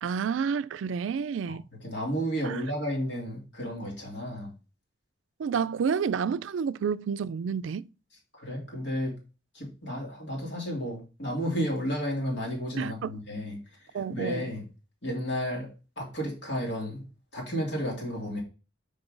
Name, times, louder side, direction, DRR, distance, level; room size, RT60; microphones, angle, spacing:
voice 1, 0.0-1.6 2.4-2.6 5.4-7.9 12.8-13.2 13.9-14.4, right 6 dB, 80° right, 0.3 m, -30 dB
voice 2, 1.5-4.5 8.3-9.2 9.5-13.6 13.9-14.6 15.0-17.0 17.3-18.4, equal, 70° left, 3.0 m, -32 dB
6.0 x 5.2 x 3.8 m
head